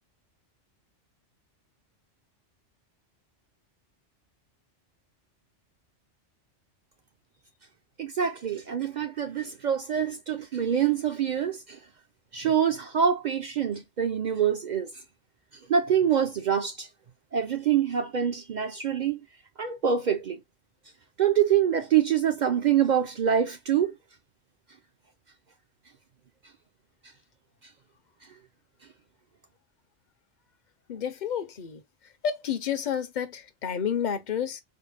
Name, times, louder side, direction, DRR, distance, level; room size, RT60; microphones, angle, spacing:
voice 1, 8.0-11.8 12.3-14.9 15.7-16.9 17.3-19.2 19.6-20.4 21.2-24.0, right 8 dB, 60° right, 0.5 m, -25 dB
voice 2, 30.9-31.8 32.2-34.6, left 8 dB, 50° left, 0.6 m, -30 dB
4.2 x 2.1 x 3.1 m
omnidirectional pair, 1.2 m